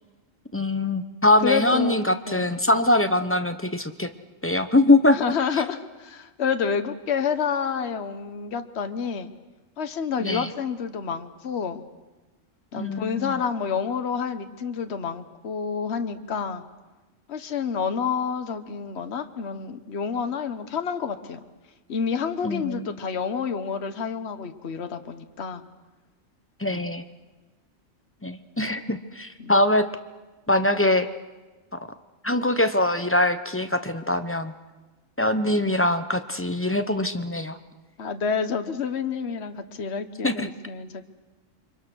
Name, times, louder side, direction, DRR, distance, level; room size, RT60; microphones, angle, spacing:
voice 1, 0.5-4.1 4.4-5.2 10.2-10.5 12.7-13.4 22.4-22.9 26.6-27.0 28.2-29.8 30.5-31.1 32.2-34.5 35.2-37.6 40.2-40.5, left 1 dB, 10° left, 9 dB, 0.8 m, -22 dB
voice 2, 1.4-2.0 2.3-2.6 5.1-9.3 9.8-11.8 12.7-16.6 17.3-21.4 21.9-25.6 26.7-26.9 29.4-29.5 38.0-41.1, left 6 dB, 55° left, 8 dB, 1.4 m, -29 dB
29.0 x 24.5 x 6.2 m, 1.2 s
omnidirectional pair, 1.3 m